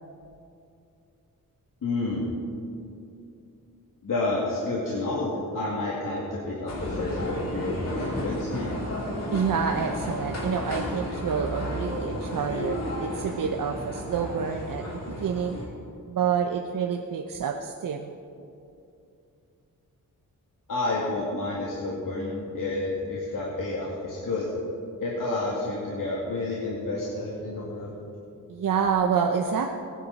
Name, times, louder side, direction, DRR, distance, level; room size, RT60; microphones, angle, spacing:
voice 1, 1.8-2.3 4.0-8.7 20.7-24.5 25.0-28.0, left 2 dB, 65° left, -5 dB, 2.3 m, -30 dB
sound 1, 6.7-15.6, equal, 50° left, 3.9 m, -32 dB
voice 2, 9.3-15.6 16.1-18.1 28.5-29.7, right 7 dB, 65° right, 3 dB, 0.8 m, -28 dB
21.5 x 10.0 x 4.2 m, 2.6 s
wide cardioid pair, 100°, 35 cm